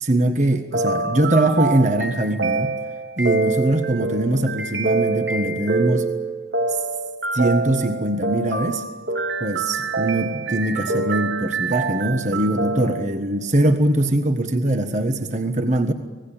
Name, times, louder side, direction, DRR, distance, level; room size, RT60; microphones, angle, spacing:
voice 1, 0.0-2.8 3.2-6.1 6.7-6.8 7.3-8.8 9.4-15.9, right 1 dB, 40° right, 7 dB, 1.4 m, -22 dB
sound 1, 0.7-13.1, right 3 dB, 70° right, 1.9 m, -25 dB
26.0 x 19.0 x 8.9 m, 1.3 s
head